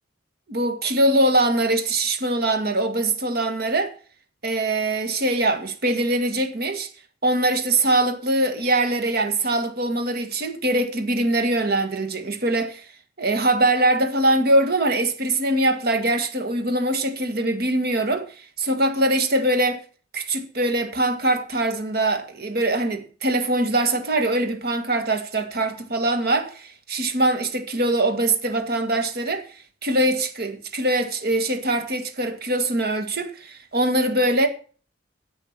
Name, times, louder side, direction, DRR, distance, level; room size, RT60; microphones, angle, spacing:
voice 1, 0.5-3.9 4.4-6.9 7.2-12.8 13.2-18.3 18.6-19.8 20.1-29.5 29.8-34.5, right 1 dB, 55° right, 1.9 m, -22 dB
10.5 x 7.6 x 6.1 m
head